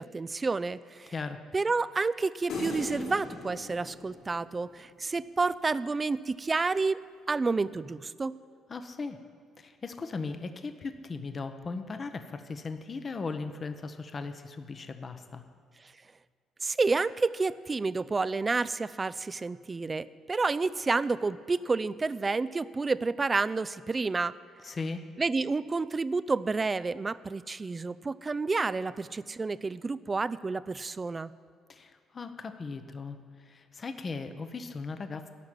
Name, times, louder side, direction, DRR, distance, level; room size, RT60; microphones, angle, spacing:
voice 1, 0.0-1.1 1.5-8.3 16.6-24.4 25.2-31.3, right 3 dB, 30° right, 17 dB, 0.4 m, -30 dB
sound 1, 2.5-4.9, left 3 dB, 70° left, 3.5 m, -39 dB
voice 2, 8.7-9.2 9.6-15.4 24.6-25.0 31.7-35.3, left 4 dB, 40° left, 8 dB, 0.8 m, -38 dB
12.5 x 5.9 x 9.1 m, 2.2 s
supercardioid pair, 60°, 0 cm